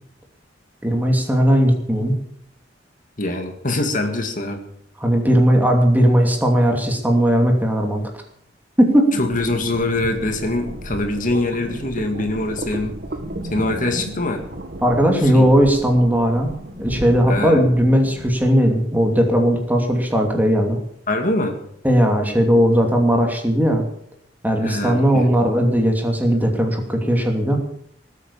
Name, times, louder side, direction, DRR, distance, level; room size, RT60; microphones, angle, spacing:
voice 1, 0.8-2.2 5.0-8.0 8.8-9.1 14.8-20.8 21.8-23.8 24.4-27.6, equal, 10° right, 3 dB, 2.7 m, -17 dB
voice 2, 3.2-4.6 9.2-12.9 13.5-14.4 15.3-15.5 17.3-17.6 21.1-21.6 24.6-25.3, left 2 dB, 45° left, 5 dB, 2.0 m, -23 dB
sound 1, 9.1-18.5, right 1 dB, 55° right, 2.0 m, -33 dB
19.5 x 8.6 x 7.2 m, 0.70 s
head